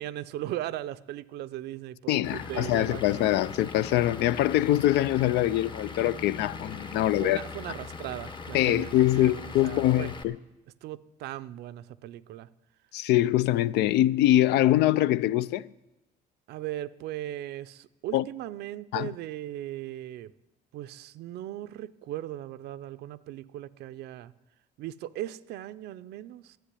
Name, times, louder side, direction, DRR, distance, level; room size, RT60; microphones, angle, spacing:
voice 1, 0.0-3.2 6.9-10.1 10.8-12.5 16.5-20.3 20.7-24.3 24.8-26.6, right 13 dB, 75° right, 0.5 m, -38 dB
voice 2, 2.1-7.4 8.5-10.4 12.9-15.7 18.1-18.2 18.9-19.1, left 14 dB, 80° left, 0.4 m, -24 dB
Vehicle / Engine, 2.2-10.2, left 4 dB, 30° left, 0.9 m, -40 dB
11.5 x 7.5 x 9.9 m
cardioid pair, 110°, 17 cm